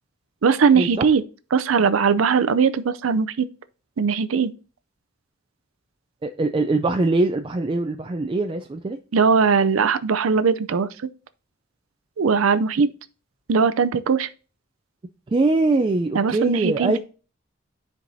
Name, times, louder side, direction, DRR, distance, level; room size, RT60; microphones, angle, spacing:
voice 1, 0.4-1.2 1.5-3.5 4.0-4.5 9.1-10.9 12.2-12.9 13.5-14.3 16.1-17.0, right 5 dB, 85° right, 0.5 m, -19 dB
voice 2, 6.2-9.0 15.3-17.0, right 2 dB, 25° right, 0.4 m, -22 dB
12.5 x 4.6 x 2.7 m
head